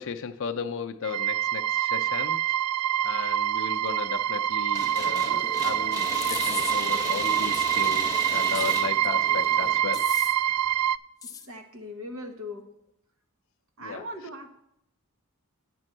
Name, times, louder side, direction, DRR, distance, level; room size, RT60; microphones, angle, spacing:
voice 1, 0.0-2.4 3.0-10.0 13.8-14.0, left 6 dB, 60° left, 6 dB, 0.5 m, -35 dB
sound 1, 1.0-11.0, right 11 dB, 85° right, 0.3 m, -26 dB
sound 2, 4.7-9.8, left 1 dB, 15° right, 1.6 m, -35 dB
sound 3, 6.2-6.7 7.5-7.7 8.5-9.1 9.9-10.3 11.2-11.5, left 7 dB, 15° left, 0.6 m, -37 dB
voice 2, 11.2-12.7 13.8-14.5, left 1 dB, 65° right, 6 dB, 1.2 m, -39 dB
8.5 x 5.2 x 7.6 m, 0.76 s
head